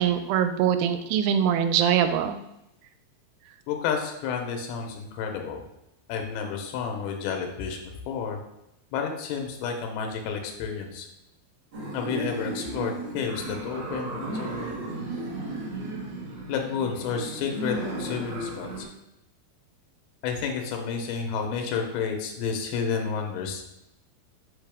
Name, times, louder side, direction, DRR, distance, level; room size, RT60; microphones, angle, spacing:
voice 1, 0.0-2.4, right 9 dB, 85° right, 9 dB, 2.6 m, -23 dB
voice 2, 3.7-5.6 6.1-7.8 8.1-8.4 8.9-11.1 11.9-14.7 16.5-18.9 20.2-23.6, left 6 dB, 80° left, 3 dB, 2.7 m, -31 dB
sound 1, 11.7-18.8, right 2 dB, 50° right, 2.0 m, -34 dB
5.9 x 5.7 x 3.5 m, 0.87 s
omnidirectional pair, 4.7 m